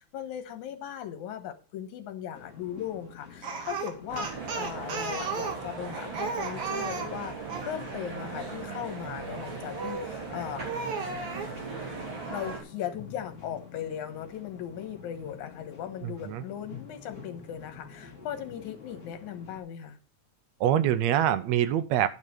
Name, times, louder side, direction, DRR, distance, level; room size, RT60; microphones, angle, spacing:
voice 1, 0.0-4.3 4.5-10.7 12.3-20.0, left 10 dB, 85° left, 2.6 m, -38 dB
sound 1, 2.3-19.6, left 5 dB, 25° left, 2.4 m, -49 dB
Speech, 3.4-7.7 9.7-10.2 10.6-11.5, right 5 dB, 55° right, 2.3 m, -34 dB
sound 2, 4.1-12.6, right 4 dB, 40° right, 4.0 m, -38 dB
voice 2, 16.0-16.4 20.6-22.1, right 11 dB, 75° right, 1.8 m, -25 dB
11.0 x 5.5 x 6.3 m
omnidirectional pair, 3.4 m